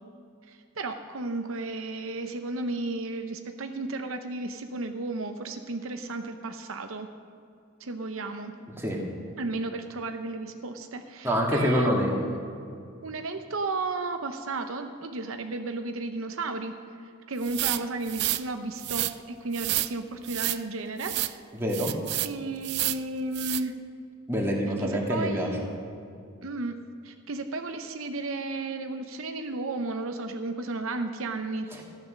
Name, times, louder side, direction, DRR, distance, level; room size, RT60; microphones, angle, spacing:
voice 1, 0.5-7.1 7.8-8.5 9.4-12.4 13.0-16.7 17.0-21.1 22.2-23.8 24.8-25.7 26.4-26.8 27.0-31.8, right 3 dB, 75° right, 7 dB, 0.7 m, -33 dB
voice 2, 8.6-9.0 11.2-12.1 21.6-21.9 24.3-25.7 31.7-31.8, equal, 10° right, -2 dB, 1.9 m, -26 dB
sound 1, 17.4-18.4 18.8-19.1 19.5-19.9 20.3-20.6 21.0-21.3 21.7-22.3 22.6-23.0 23.3-23.6, right 16 dB, 50° right, 0.3 m, -29 dB
13.5 x 9.5 x 6.4 m, 2.5 s
head